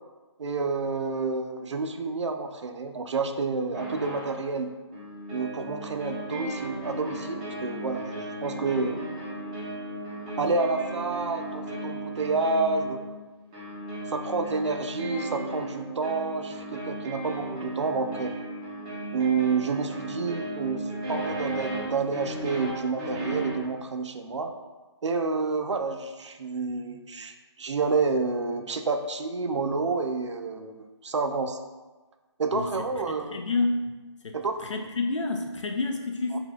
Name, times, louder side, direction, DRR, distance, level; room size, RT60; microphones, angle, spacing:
voice 1, 0.4-4.7 5.3-9.0 10.4-13.0 14.1-18.3 19.1-24.5 25.0-31.6 32.4-33.4 34.3-34.6 36.3-36.4, right 4 dB, 75° right, 6 dB, 0.4 m, -29 dB
sound 1, 3.7-4.4 4.9-23.7, right 1 dB, 15° right, 0.5 m, -36 dB
voice 2, 33.1-33.8 34.2-34.4 34.7-36.4, left 3 dB, 80° left, 3 dB, 0.6 m, -28 dB
3.4 x 2.8 x 3.7 m, 1.2 s
figure-of-eight pair, 160°, 15 cm